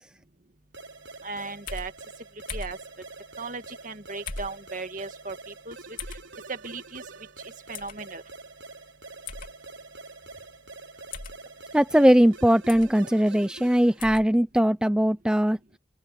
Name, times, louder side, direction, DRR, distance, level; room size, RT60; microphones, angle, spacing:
sound 1, 0.7-14.1, right 3 dB, 90° right, 4.0 m, -45 dB
voice 1, 1.2-1.9 2.5-2.8 3.4-5.8 6.5-7.0 7.4-8.2, right 3 dB, 45° right, 1.8 m, -37 dB
sound 2, 1.7-1.9 2.5-2.8 4.3-4.6 6.0-6.2 7.7-8.0 9.3-9.5 11.1-11.4 12.7-12.9 14.0-14.3, left 4 dB, 45° left, 3.2 m, -37 dB
voice 2, 11.7-15.6, equal, 5° right, 0.5 m, -20 dB
open air
head